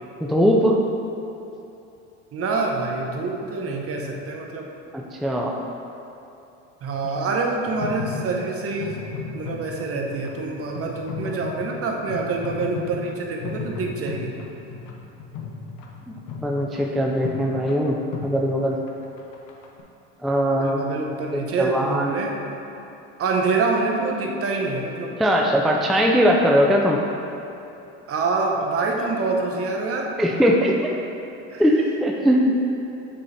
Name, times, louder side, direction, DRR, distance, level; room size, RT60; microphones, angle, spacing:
voice 1, 0.2-0.8 4.9-5.5 16.4-18.0 18.2-18.8 20.2-20.9 21.3-22.2 25.2-27.0 30.2-30.7 31.6-32.5, equal, ahead, -1 dB, 0.4 m, -20 dB
voice 2, 2.3-4.7 6.8-9.0 9.3-14.3 20.5-22.4 23.2-25.1 28.1-30.1 31.5-31.6, right 3 dB, 40° right, 1 dB, 0.9 m, -26 dB
sound 1, 7.7-19.8, left 5 dB, 60° left, 0.9 m, -35 dB
7.5 x 4.2 x 3.3 m, 2.8 s
supercardioid pair, 95°, 34 cm